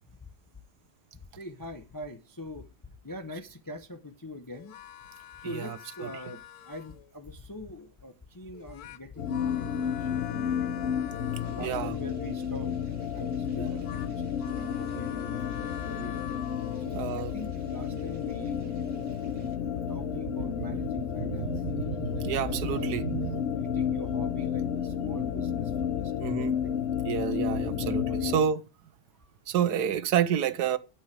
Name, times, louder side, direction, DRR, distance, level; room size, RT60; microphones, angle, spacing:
voice 1, 1.1-4.8 5.4-10.9 11.4-12.7 13.1-16.2 16.8-18.8 19.7-21.6 22.3-22.9 23.6-26.3 26.6-26.7 27.8-28.5 29.2-29.3, left 2 dB, 20° left, 0.5 m, -43 dB
sound 1, 4.5-7.1 8.5-12.2 13.4-17.1, left 12 dB, 70° left, 1.1 m, -46 dB
voice 2, 5.4-6.1 11.6-11.9 13.6-13.8 16.9-17.3 21.4-23.4 26.2-26.5 27.0-28.6 29.5-30.8, right 9 dB, 75° right, 1.3 m, -29 dB
sound 2, 9.2-28.4, left 8 dB, 45° left, 1.1 m, -31 dB
sound 3, 11.4-19.6, equal, 55° right, 1.8 m, -53 dB
11.5 x 6.3 x 4.8 m
omnidirectional pair, 1.8 m